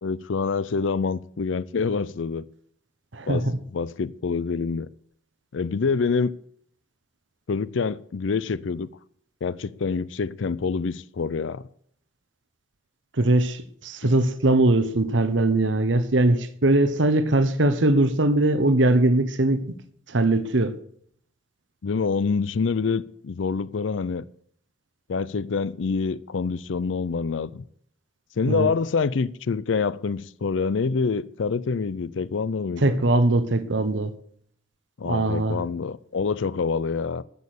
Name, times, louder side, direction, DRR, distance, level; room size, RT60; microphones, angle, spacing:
voice 1, 0.0-2.5 3.3-3.5 3.7-4.9 5.5-6.3 7.5-8.9 9.4-11.7 14.0-14.1 21.8-24.2 25.1-27.6 28.4-33.0 35.0-37.2, left 5 dB, 90° left, 0.5 m, -26 dB
voice 2, 3.1-3.6 13.1-19.8 20.1-20.8 28.5-28.7 32.8-34.1 35.0-35.6, right 2 dB, 80° right, 1.1 m, -21 dB
13.5 x 6.5 x 8.4 m
head